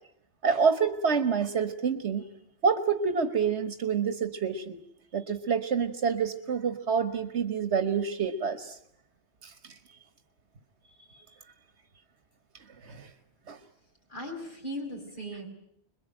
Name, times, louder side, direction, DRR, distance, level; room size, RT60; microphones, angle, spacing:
voice 1, 0.4-2.2 2.6-4.8 5.1-8.8 9.4-9.5 12.8-13.1 13.5-13.6, right 6 dB, 80° right, 10 dB, 1.7 m, -27 dB
voice 2, 14.1-15.5, equal, 45° left, 2 dB, 5.6 m, -37 dB
26.5 x 22.0 x 9.0 m, 0.73 s
omnidirectional pair, 1.1 m